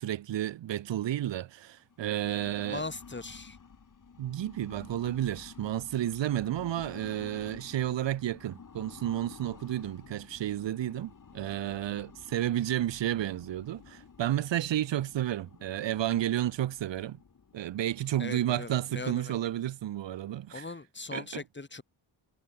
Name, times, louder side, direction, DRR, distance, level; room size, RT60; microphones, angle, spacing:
voice 1, 0.0-2.8 4.2-17.2 17.5-20.7 21.1-21.4, right 12 dB, 85° right, 5.6 m, -31 dB
sound 1, 1.8-20.6, left 6 dB, 45° left, 7.7 m, -52 dB
voice 2, 2.7-3.6 18.2-19.4 20.5-21.8, left 3 dB, 25° left, 7.8 m, -40 dB
cardioid pair, 75°, 43 cm